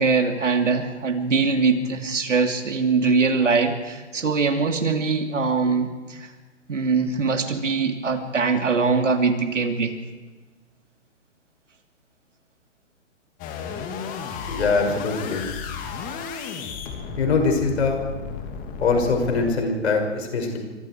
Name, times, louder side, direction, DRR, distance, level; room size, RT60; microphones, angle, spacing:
voice 1, 0.0-6.3 6.7-10.0, right 4 dB, 75° right, 5 dB, 3.1 m, -22 dB
sound 1, 13.4-19.5, left 6 dB, 20° left, 2.5 m, -33 dB
voice 2, 14.5-15.5 17.2-18.0 18.8-20.6, left 4 dB, 60° left, 3 dB, 6.3 m, -22 dB
28.5 x 24.5 x 4.7 m, 1.3 s
figure-of-eight pair, 130°, 37 cm